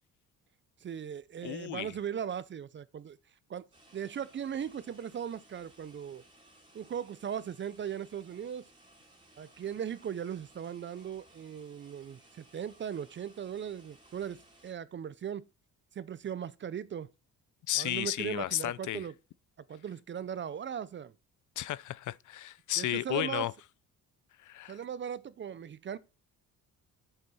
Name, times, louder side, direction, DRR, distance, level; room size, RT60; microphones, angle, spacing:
voice 1, 0.8-3.2 3.5-3.7 3.9-6.2 6.7-8.7 9.4-15.5 15.9-17.1 17.8-19.1 19.7-21.1 22.8-23.5 24.7-26.0, right 8 dB, 35° right, 0.5 m, -38 dB
voice 2, 1.4-1.9 17.7-19.0 21.6-23.5 24.4-24.8, left 14 dB, 55° left, 0.5 m, -33 dB
sound 1, 3.7-14.7, right 1 dB, 15° right, 3.0 m, -60 dB
7.8 x 7.0 x 4.1 m
cardioid pair, 130°, 36 cm